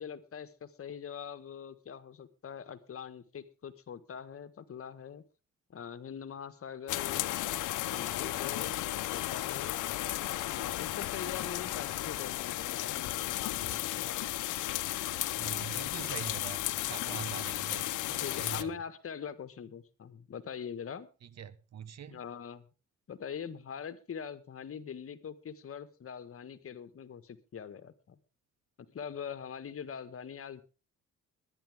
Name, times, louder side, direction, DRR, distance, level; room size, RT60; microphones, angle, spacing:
voice 1, 0.0-5.2 5.7-7.3 7.9-9.8 10.4-14.1 18.2-21.1 22.1-22.7 23.1-28.2 28.9-30.6, left 7 dB, 50° left, 12 dB, 1.5 m, -43 dB
sound 1, 6.9-18.6, left 15 dB, 80° left, 0.9 m, -34 dB
voice 2, 15.3-18.8 21.4-22.2, right 8 dB, 60° right, 17 dB, 1.2 m, -43 dB
21.5 x 10.5 x 3.6 m, 0.34 s
cardioid pair, 90°, 30 cm